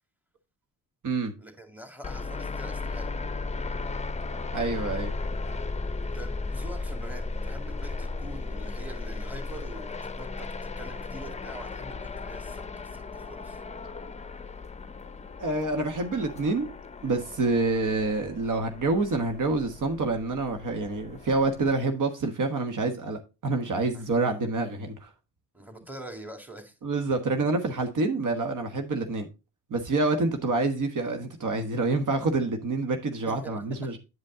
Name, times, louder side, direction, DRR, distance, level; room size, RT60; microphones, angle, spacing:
voice 1, 1.4-3.1 6.1-9.9 10.1-13.6 23.9-24.0 25.5-26.8 33.3-34.0, right 1 dB, 5° right, 2.0 m, -44 dB
sound 1, 2.0-21.7, left 3 dB, 20° left, 0.7 m, -36 dB
voice 2, 4.5-5.1 15.4-16.7 17.0-25.1 26.8-29.3 29.7-34.0, right 3 dB, 55° right, 1.4 m, -27 dB
9.6 x 5.2 x 3.7 m
cardioid pair, 80°, 38 cm